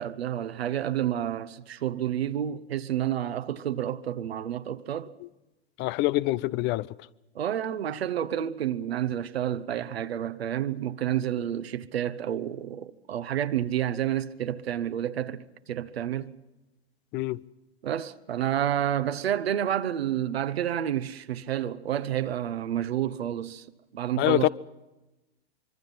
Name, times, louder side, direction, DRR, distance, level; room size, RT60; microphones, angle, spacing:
voice 1, 0.0-5.1 7.3-16.3 17.8-23.7 23.9-24.5, right 10 dB, 70° right, 1.2 m, -29 dB
voice 2, 5.8-6.9 17.1-17.4 24.2-24.5, left 18 dB, 35° left, 0.7 m, -25 dB
25.0 x 24.0 x 5.7 m
figure-of-eight pair, 90°, 32 cm